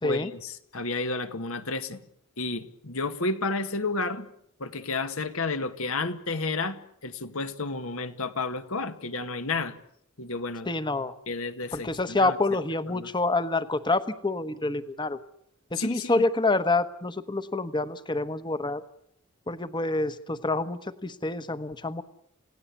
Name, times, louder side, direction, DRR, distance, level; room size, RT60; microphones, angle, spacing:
voice 1, 0.0-2.0 2.4-4.3 4.6-9.7 10.2-10.7 11.3-12.4 12.9-13.1 15.8-16.2, left 3 dB, 70° left, 9 dB, 1.7 m, -31 dB
voice 2, 10.7-11.2 11.7-15.2 15.7-18.8 19.5-22.0, left 2 dB, 20° left, 12 dB, 1.1 m, -27 dB
29.0 x 17.5 x 8.4 m, 0.73 s
head